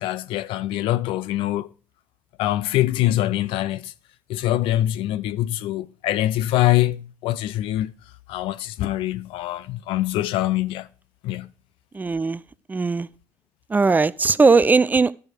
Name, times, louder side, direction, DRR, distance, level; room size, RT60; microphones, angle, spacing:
voice 1, 0.0-1.7 2.4-3.9 4.3-7.9 8.3-10.9 11.2-11.5, left 14 dB, 70° left, 0.5 m, -24 dB
voice 2, 11.9-12.4 12.7-13.1 13.7-15.1, right 4 dB, 20° right, 0.4 m, -18 dB
12.0 x 5.0 x 4.5 m
supercardioid pair, 70°, 9 cm